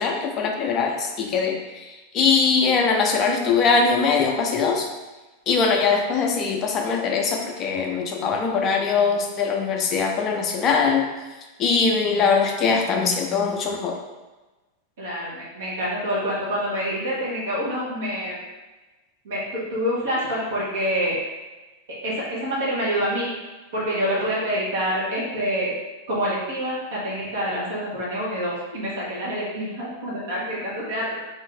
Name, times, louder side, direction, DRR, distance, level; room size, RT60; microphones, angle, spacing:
voice 1, 0.0-4.9 5.5-11.1 11.6-14.0, left 5 dB, 30° left, 2 dB, 0.5 m, -22 dB
voice 2, 15.0-18.4 19.2-21.2 22.0-23.3 23.7-25.7 26.1-31.1, equal, 60° right, -6 dB, 1.0 m, -26 dB
2.6 x 2.5 x 3.7 m, 1.2 s
figure-of-eight pair, 90°, 0 cm